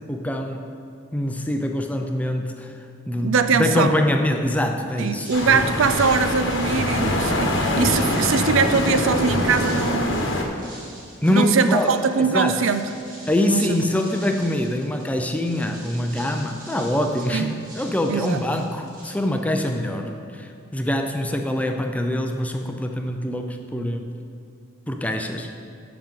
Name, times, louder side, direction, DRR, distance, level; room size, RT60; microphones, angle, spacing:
voice 1, 0.1-0.7 1.1-2.7 3.1-5.6 11.2-12.0 12.3-12.6 13.3-24.1 24.9-25.5, left 1 dB, 5° left, 4 dB, 0.5 m, -24 dB
voice 2, 3.2-4.0 5.0-10.3 11.3-12.8 13.5-13.8 17.3-17.5 18.1-18.4, right 5 dB, 75° right, 10 dB, 0.4 m, -22 dB
sound 1, 5.0-19.7, right 1 dB, 45° right, 2.0 m, -44 dB
sound 2, 5.3-10.4, left 1 dB, 65° left, 1.0 m, -23 dB
12.5 x 5.9 x 3.7 m, 2.4 s
head